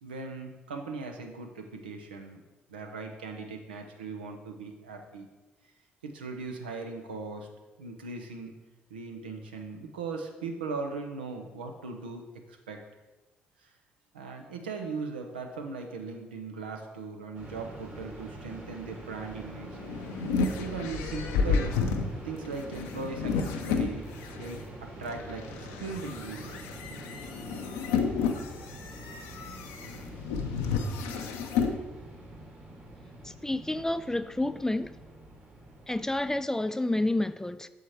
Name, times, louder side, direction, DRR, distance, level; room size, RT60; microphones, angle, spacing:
voice 1, 0.0-2.4 2.7-5.3 6.0-7.5 7.8-8.5 8.9-12.8 13.6-13.7 14.1-19.8 20.5-21.8 22.2-24.1 24.4-26.6, right 4 dB, 90° right, 0.6 m, -39 dB
sound 1, 17.3-36.4, right 2 dB, 45° right, 2.3 m, -45 dB
sound 2, 19.5-24.5 25.1-31.8, left 5 dB, 75° left, 0.5 m, -31 dB
voice 2, 33.2-35.0 35.9-37.7, left 1 dB, 10° left, 0.3 m, -29 dB
6.5 x 4.7 x 4.3 m
hypercardioid pair, 50°, 5 cm